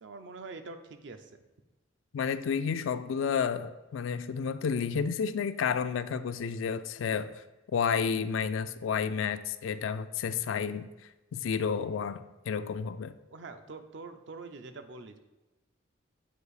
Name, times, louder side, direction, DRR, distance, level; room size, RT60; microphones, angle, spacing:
voice 1, 0.0-1.3 13.3-15.2, right 3 dB, 65° right, 8 dB, 0.5 m, -44 dB
voice 2, 2.1-7.4 7.7-10.9 11.3-12.2 12.5-13.1, left 6 dB, 80° left, 12 dB, 0.3 m, -31 dB
7.8 x 2.7 x 4.8 m, 1.1 s
head